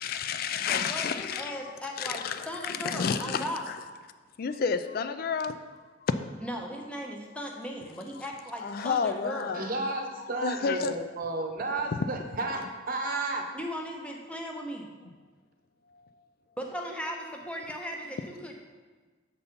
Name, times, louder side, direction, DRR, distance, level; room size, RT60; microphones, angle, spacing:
voice 1, 0.0-1.6 2.0-3.8 4.4-6.1 8.2-8.3 8.6-9.7 10.2-10.9 11.9-12.0 15.0-15.1 15.9-16.2, left 6 dB, 50° left, 10 dB, 0.3 m, -31 dB
voice 2, 0.6-3.6 6.4-9.6 13.5-14.9 16.6-18.5, equal, 5° left, 1 dB, 0.7 m, -37 dB
voice 3, 9.5-13.4, right 2 dB, 45° right, 3 dB, 0.8 m, -32 dB
6.9 x 4.2 x 5.1 m, 1.4 s
head